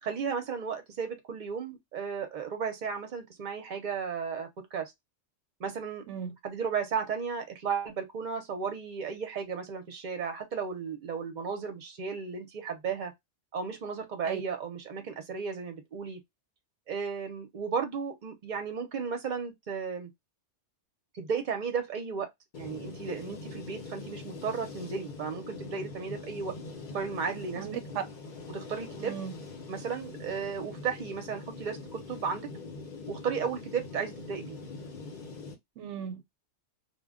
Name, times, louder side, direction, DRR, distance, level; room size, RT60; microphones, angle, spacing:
voice 1, 0.0-4.9 5.6-6.1 6.4-13.1 13.5-16.2 16.9-20.1 21.1-22.3 22.6-26.5 26.9-27.7 28.5-29.2 29.7-32.5 33.1-34.6, right 6 dB, 45° right, 0.7 m, -34 dB
sound 1, 22.5-35.5, left 3 dB, 50° left, 0.8 m, -43 dB
voice 2, 29.0-29.3 35.8-36.2, right 8 dB, 80° right, 0.9 m, -37 dB
2.2 x 2.1 x 3.5 m
omnidirectional pair, 1.2 m